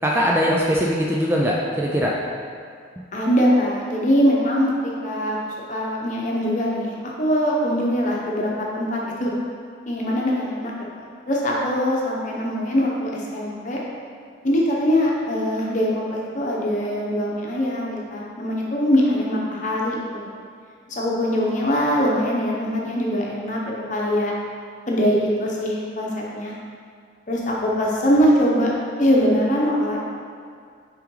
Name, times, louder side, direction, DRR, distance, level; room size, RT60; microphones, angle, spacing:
voice 1, 0.0-2.1, equal, 10° right, -3 dB, 0.4 m, -21 dB
voice 2, 3.1-9.3 9.9-10.7 11.0-13.8 14.4-20.2 20.9-24.3 24.9-26.5 27.3-28.7 29.0-30.0, equal, 40° left, -3 dB, 0.9 m, -22 dB
5.7 x 5.0 x 3.9 m, 2.2 s
head